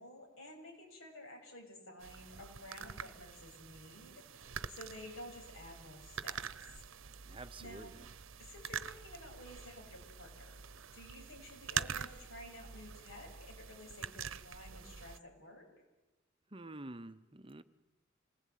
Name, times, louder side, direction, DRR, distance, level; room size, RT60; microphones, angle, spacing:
voice 1, 0.0-6.7 7.3-8.0 8.4-15.7, left 1 dB, 80° left, 1 dB, 7.6 m, -52 dB
sound 1, 2.0-15.2, right 7 dB, 70° right, 0.9 m, -45 dB
voice 2, 7.3-8.1 16.5-17.6, right 2 dB, 25° right, 11 dB, 0.8 m, -48 dB
27.0 x 19.5 x 9.4 m, 1.1 s
head